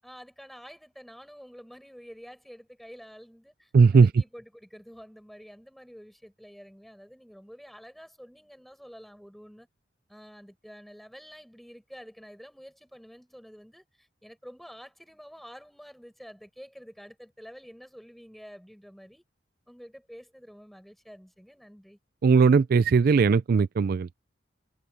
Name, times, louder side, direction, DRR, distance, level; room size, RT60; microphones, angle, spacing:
voice 1, 0.0-9.7 10.1-19.2 19.7-22.0, equal, ahead, 7.0 m, -48 dB
voice 2, 3.7-4.1 22.2-24.1, right 5 dB, 55° right, 0.4 m, -19 dB
head